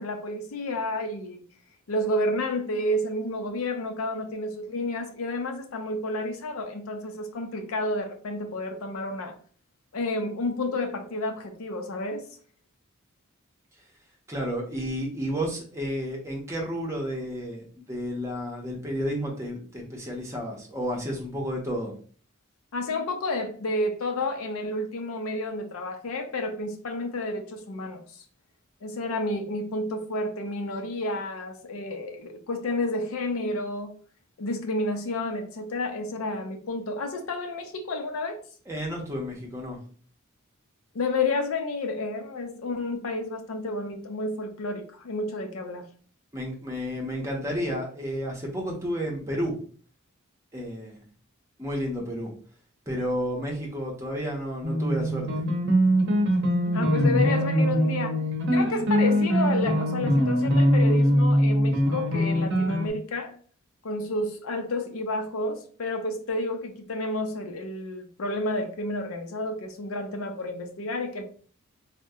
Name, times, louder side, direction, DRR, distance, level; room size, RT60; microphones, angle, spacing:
voice 1, 0.0-1.4 1.9-9.3 9.9-12.3 22.7-28.2 28.8-34.0 34.4-38.4 40.9-45.9 56.7-58.2 58.5-63.3 63.8-71.2, left 2 dB, 75° left, 0.5 m, -30 dB
voice 2, 14.3-21.9 38.7-39.8 46.3-49.6 50.5-51.0 51.6-52.3 52.9-55.4, equal, 15° right, 0.7 m, -31 dB
sound 1, 54.6-62.9, equal, 55° right, 0.7 m, -22 dB
3.5 x 2.1 x 2.7 m
head